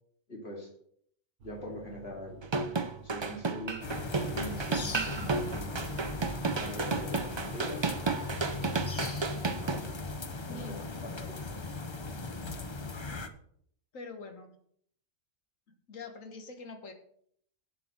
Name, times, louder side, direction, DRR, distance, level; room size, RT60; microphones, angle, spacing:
voice 1, 0.3-0.7 1.4-2.4 3.0-3.8 4.3-6.0 6.6-7.8 9.6-9.9 10.5-11.3 13.1-13.2, equal, 50° left, 0 dB, 2.8 m, -43 dB
sound 1, 1.4-7.6, right 7 dB, 65° right, 1.4 m, -50 dB
sound 2, 2.4-9.8, right 4 dB, 40° right, 0.4 m, -32 dB
sound 3, 3.8-13.3, left 3 dB, 30° left, 0.6 m, -38 dB
voice 2, 10.5-10.9 13.9-14.5 15.9-16.9, left 3 dB, 75° left, 6 dB, 1.7 m, -44 dB
8.4 x 8.0 x 6.1 m, 0.67 s
omnidirectional pair, 1.4 m